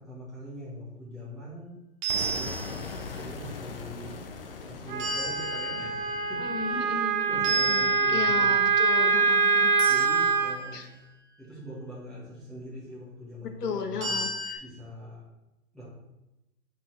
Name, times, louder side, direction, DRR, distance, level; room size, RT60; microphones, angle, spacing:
voice 1, 0.0-1.8 2.3-2.5 2.9-4.2 4.7-6.4 6.7-8.6 9.0-9.1 9.9-10.8 11.4-14.2 14.6-15.2 15.7-15.8, equal, ahead, -11 dB, 1.6 m, -42 dB
sound 1, 2.0-3.2 5.0-7.0 7.4-8.7 9.8-10.8 14.0-14.6, right 3 dB, 20° right, 0.7 m, -34 dB
sound 2, 2.1-8.0, left 5 dB, 40° left, 0.5 m, -41 dB
Wind instrument woodwind instrument, 4.9-10.6, right 5 dB, 65° right, 0.9 m, -24 dB
voice 2, 6.4-9.7 10.7-10.9 13.4-14.6, left 6 dB, 85° left, 6 dB, 1.2 m, -35 dB
7.5 x 4.3 x 4.2 m, 0.97 s
hypercardioid pair, 160°, 46 cm